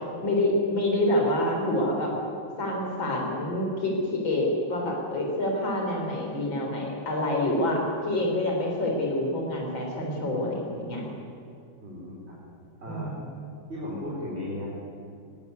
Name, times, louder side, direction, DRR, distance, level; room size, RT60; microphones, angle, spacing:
voice 1, 0.2-2.1 2.6-11.1 12.9-13.4, left 1 dB, 65° left, -1 dB, 4.9 m, -27 dB
voice 2, 11.8-12.4 12.8-13.1 13.7-14.7, left 1 dB, 30° right, -6 dB, 4.3 m, -35 dB
19.5 x 17.0 x 9.5 m, 2.4 s
omnidirectional pair, 2.2 m